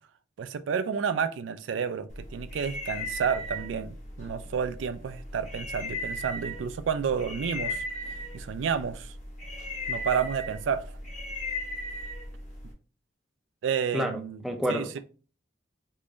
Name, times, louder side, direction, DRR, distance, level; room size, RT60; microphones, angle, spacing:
voice 1, 0.4-7.8 8.3-9.1 9.9-11.0 13.6-14.4 14.7-15.0, right 6 dB, 90° right, 0.4 m, -30 dB
sound 1, 2.1-12.7, left 1 dB, 40° left, 1.2 m, -37 dB
voice 2, 13.9-15.0, equal, ahead, 0.5 m, -30 dB
3.7 x 2.5 x 3.0 m
head